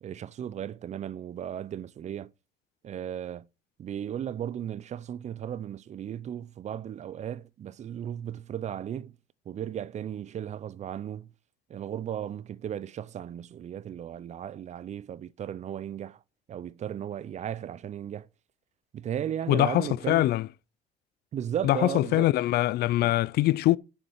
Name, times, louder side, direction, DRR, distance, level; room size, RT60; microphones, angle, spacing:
voice 1, 0.0-2.3 2.8-3.5 3.8-9.1 9.5-11.3 11.7-16.2 16.5-18.3 18.9-20.3 21.3-22.3, right 9 dB, 45° right, 0.6 m, -35 dB
voice 2, 19.5-20.5 21.6-23.8, left 16 dB, 70° left, 0.5 m, -23 dB
7.2 x 6.8 x 6.4 m
cardioid pair, 110°, 17 cm